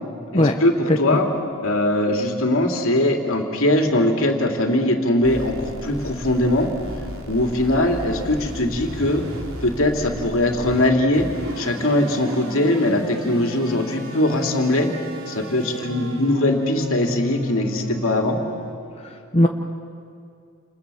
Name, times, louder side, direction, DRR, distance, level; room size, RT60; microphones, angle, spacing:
voice 1, 0.3-1.3 1.6-6.7 7.3-9.2 9.6-11.3 11.6-14.9 15.3-18.4, left 1 dB, 65° left, 3 dB, 3.2 m, -21 dB
voice 2, 0.9-1.2 19.0-19.5, left 1 dB, 30° left, 2 dB, 1.2 m, -19 dB
sound 1, 5.2-18.8, equal, 65° right, 3.9 m, -34 dB
29.5 x 28.5 x 7.2 m, 2.4 s
head